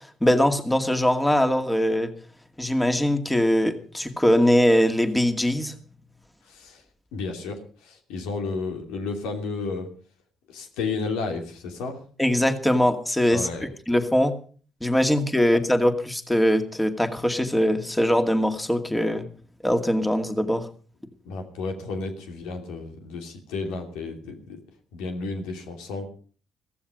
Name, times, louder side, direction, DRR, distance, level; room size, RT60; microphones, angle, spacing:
voice 1, 0.2-2.1 2.6-5.8 12.2-14.3 14.8-19.3 19.6-20.7, equal, 10° left, 7 dB, 2.3 m, -22 dB
voice 2, 6.5-6.8 7.1-9.9 10.5-12.0 13.3-13.7 21.2-24.6 24.9-26.1, left 3 dB, 90° left, 4 dB, 3.0 m, -32 dB
15.5 x 14.5 x 5.2 m, 0.41 s
supercardioid pair, 65°, 0 cm